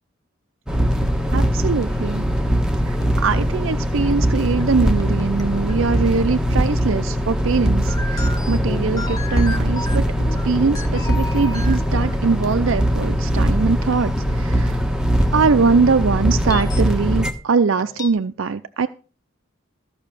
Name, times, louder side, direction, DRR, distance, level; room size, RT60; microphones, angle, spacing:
sound 1, 0.7-17.3, equal, 5° right, 1.3 m, -21 dB
voice 1, 1.3-2.2 2.9-10.1 10.4-14.8 15.3-18.9, right 4 dB, 65° right, 0.5 m, -22 dB
sound 2, 1.8-1.9 3.0-3.1 3.4-3.5 4.1-4.2 4.6-5.4 5.7-5.8 6.8-6.9 7.9-12.7 13.0-13.1 13.8-13.9 14.4-14.5 14.8-14.9 15.2-15.3 15.9-16.0 16.5-17.0 17.8-18.1, left 2 dB, 15° left, 0.9 m, -33 dB
14.0 x 5.8 x 6.7 m
head